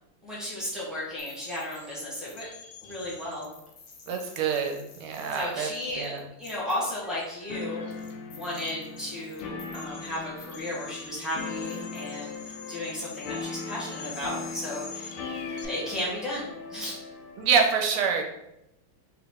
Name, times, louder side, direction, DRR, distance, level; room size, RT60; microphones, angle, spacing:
voice 1, 0.2-2.5 2.8-3.5 5.3-6.1 6.4-7.8 8.3-15.3 15.6-17.0, left 1 dB, ahead, -8 dB, 0.6 m, -34 dB
sound 1, 1.2-15.7, left 5 dB, 70° left, 1.3 m, -46 dB
voice 2, 4.1-5.7 6.0-6.2 17.4-18.2, right 6 dB, 90° right, 3 dB, 1.5 m, -26 dB
sound 2, 7.5-17.6, left 4 dB, 85° left, 1.5 m, -39 dB
3.9 x 2.3 x 3.6 m, 0.83 s
omnidirectional pair, 2.4 m